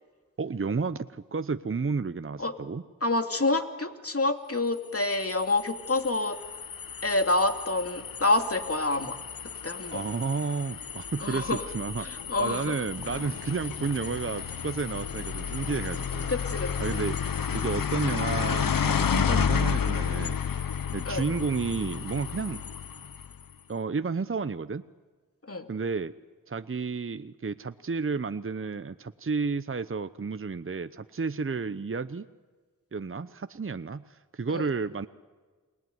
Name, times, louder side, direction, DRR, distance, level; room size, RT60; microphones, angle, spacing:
voice 1, 0.4-2.8 9.9-12.1 12.4-16.3 16.8-17.2 17.5-20.4 20.9-22.6 23.7-24.8 25.7-26.1 26.5-32.3 32.9-35.1, right 4 dB, 40° right, 12 dB, 0.9 m, -31 dB
voice 2, 3.0-6.4 7.0-9.2 9.6-10.0 11.2-11.6 12.0-12.7 16.3-16.7 21.1-21.2 25.5-25.7 34.5-34.7, left 2 dB, 40° left, 6 dB, 2.7 m, -27 dB
sound 1, 4.9-23.4, left 7 dB, 75° left, 1.0 m, -32 dB
29.5 x 21.0 x 9.5 m, 1.4 s
cardioid pair, 45°, 34 cm